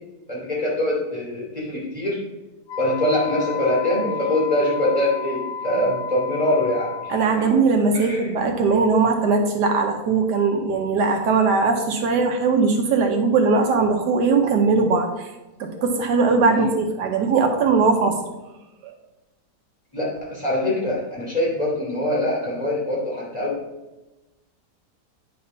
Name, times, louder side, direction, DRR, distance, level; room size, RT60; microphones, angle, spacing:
voice 1, 0.3-2.2 2.8-7.5 7.9-8.3 16.5-16.7 19.9-23.5, left 1 dB, 25° left, -5 dB, 3.0 m, -24 dB
Wind instrument woodwind instrument, 2.7-7.5, left 7 dB, 60° left, 1.3 m, -32 dB
voice 2, 7.1-15.3 15.6-18.2 18.8-18.9, right 4 dB, 80° right, 4 dB, 1.4 m, -20 dB
9.5 x 4.2 x 5.4 m, 1.0 s
omnidirectional pair, 1.8 m